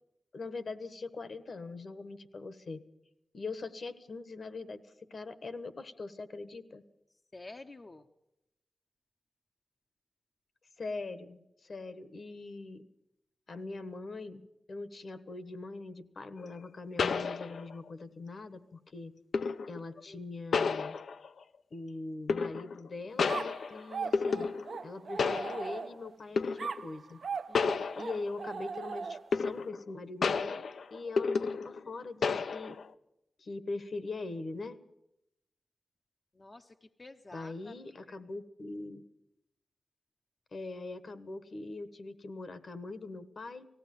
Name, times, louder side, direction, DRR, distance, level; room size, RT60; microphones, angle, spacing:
voice 1, 0.3-2.8 3.3-6.8 10.8-12.8 13.5-19.1 19.7-21.0 21.7-24.5 24.8-27.2 28.0-32.8 33.4-34.8 37.3-39.0 40.5-43.7, left 3 dB, 50° left, 12 dB, 1.3 m, -42 dB
voice 2, 7.1-8.1 27.5-27.9 36.3-38.2, left 2 dB, 25° left, 5 dB, 0.7 m, -51 dB
sound 1, 16.4-16.5 17.0-17.9 19.3-19.8 20.5-21.4 22.3-22.9 23.2-24.9 25.2-25.9 26.4-26.8 27.5-28.5 29.3-29.9 30.2-31.9 32.2-32.9, left 5 dB, 75° left, 0.7 m, -32 dB
sound 2, 23.3-26.1 26.6-29.5, right 5 dB, 60° right, 0.7 m, -39 dB
19.0 x 15.5 x 9.3 m, 0.85 s
wide cardioid pair, 160°, 0 cm